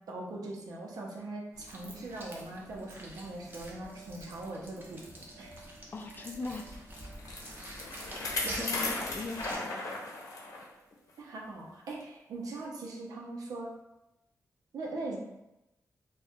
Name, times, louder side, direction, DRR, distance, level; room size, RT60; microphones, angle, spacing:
voice 1, 0.1-5.6 8.4-8.6 11.2-13.7 14.7-15.2, right 2 dB, 85° right, -2 dB, 0.7 m, -41 dB
sound 1, 1.5-9.6, right 1 dB, 35° right, 0.7 m, -47 dB
sound 2, 3.0-11.6, right 4 dB, 10° left, 0.9 m, -59 dB
voice 2, 5.9-6.7 8.5-9.9, left 3 dB, 35° left, 3 dB, 0.4 m, -39 dB
Bicycle, 6.7-10.7 11.1-11.2 12.0-12.1, left 2 dB, 70° left, 0.7 m, -36 dB
4.3 x 2.3 x 2.4 m, 0.92 s
wide cardioid pair, 135°, 6 cm